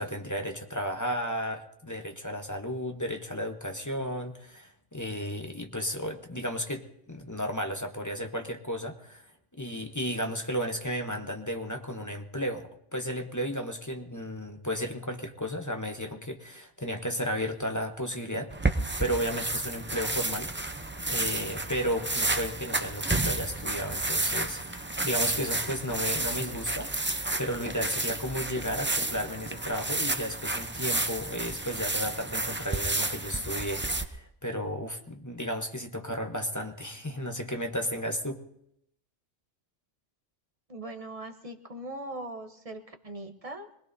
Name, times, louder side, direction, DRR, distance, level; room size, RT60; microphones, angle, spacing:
voice 1, 0.0-9.2 9.6-18.7 19.0-20.7 21.1-38.5, equal, 15° left, 4 dB, 0.9 m, -34 dB
sound 1, 18.5-34.0, right 2 dB, 15° right, 0.4 m, -31 dB
voice 2, 40.7-43.7, right 1 dB, 30° right, 5 dB, 1.0 m, -40 dB
25.5 x 20.0 x 2.7 m, 0.76 s
omnidirectional pair, 1.2 m